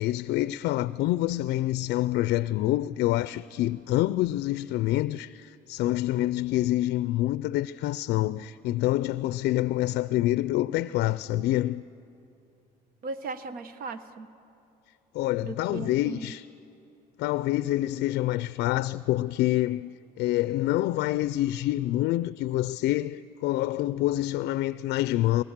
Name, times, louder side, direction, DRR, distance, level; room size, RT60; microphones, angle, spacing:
voice 1, 0.0-11.8 15.1-16.5 17.2-25.4, left 15 dB, 80° left, 0.4 m, -27 dB
voice 2, 13.0-14.3 15.4-16.4, right 3 dB, 60° right, 1.1 m, -37 dB
21.5 x 20.5 x 7.4 m
cardioid pair, 110°, 17 cm